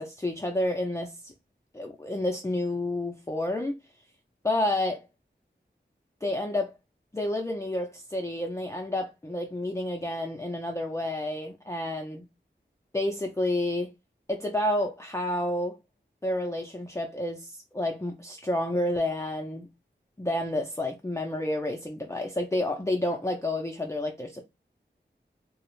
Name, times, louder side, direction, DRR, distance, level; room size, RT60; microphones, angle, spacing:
voice 1, 0.0-1.3 1.7-3.8 4.4-5.1 6.2-6.7 7.1-12.3 12.9-13.9 14.3-15.8 16.2-19.7 20.2-24.4, left 1 dB, 15° left, 0.4 m, -30 dB
2.3 x 2.0 x 3.0 m
wide cardioid pair, 50°, 19 cm